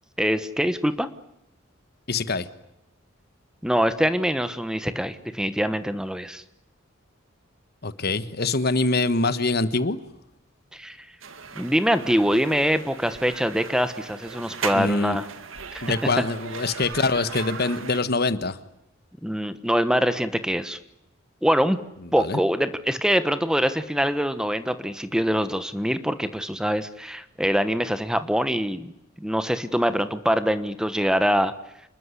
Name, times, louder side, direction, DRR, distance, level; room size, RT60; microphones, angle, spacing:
voice 1, 0.2-1.1 3.6-6.4 10.7-11.0 11.5-15.3 15.7-15.9 19.2-20.8 21.4-21.8 22.1-28.9 29.2-31.5, equal, 5° right, 11 dB, 1.2 m, -24 dB
voice 2, 2.1-2.5 7.8-10.0 14.7-15.2 15.8-18.6 22.2-22.4, left 3 dB, 50° left, 13 dB, 1.4 m, -24 dB
sound 1, 11.2-18.0, right 5 dB, 80° right, 2.2 m, -37 dB
28.5 x 21.5 x 9.9 m, 0.85 s
head